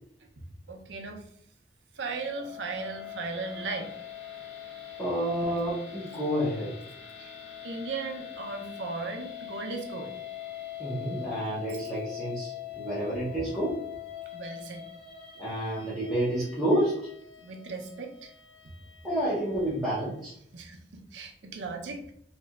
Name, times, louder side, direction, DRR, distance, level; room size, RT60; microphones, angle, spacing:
voice 1, 0.4-1.3 1.9-4.0 7.2-7.4 7.6-10.1 14.3-14.8 17.4-18.3 20.5-22.1, right 4 dB, 90° right, 4 dB, 0.6 m, -37 dB
sound 1, 1.9-20.2, left 11 dB, 75° left, 1.0 m, -43 dB
voice 2, 5.0-6.8 10.8-13.8 15.4-17.0 19.0-20.3, right 1 dB, ahead, -12 dB, 0.7 m, -29 dB
3.2 x 2.7 x 2.3 m, 0.66 s
head